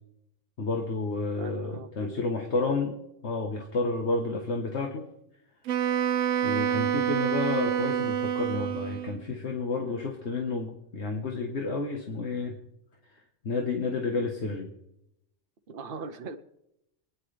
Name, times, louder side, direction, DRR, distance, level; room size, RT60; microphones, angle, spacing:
voice 1, 0.6-2.9 3.2-5.0 6.4-12.6 13.4-14.7, left 3 dB, 65° left, 2 dB, 1.6 m, -30 dB
voice 2, 1.4-2.9 9.9-10.0 15.7-16.3, right 5 dB, 50° right, 6 dB, 1.0 m, -41 dB
Wind instrument woodwind instrument, 5.7-9.2, right 9 dB, 80° right, 1.0 m, -27 dB
26.5 x 10.0 x 3.4 m, 0.83 s
omnidirectional pair, 1.3 m